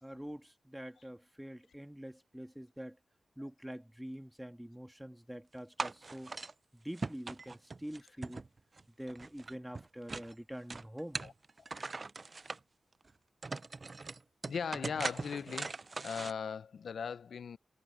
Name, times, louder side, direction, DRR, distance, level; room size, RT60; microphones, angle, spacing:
voice 1, 0.0-3.0 3.4-6.3 6.7-8.4 9.0-11.2, equal, 5° right, 1.8 m, -45 dB
sound 1, 5.8-6.5 7.0-8.8 9.1-10.3 10.7-12.6 13.1-13.2 13.4-16.3, right 3 dB, 35° right, 0.4 m, -40 dB
voice 2, 14.5-17.6, left 6 dB, 70° left, 0.4 m, -39 dB
wide cardioid pair, 95°, 0 cm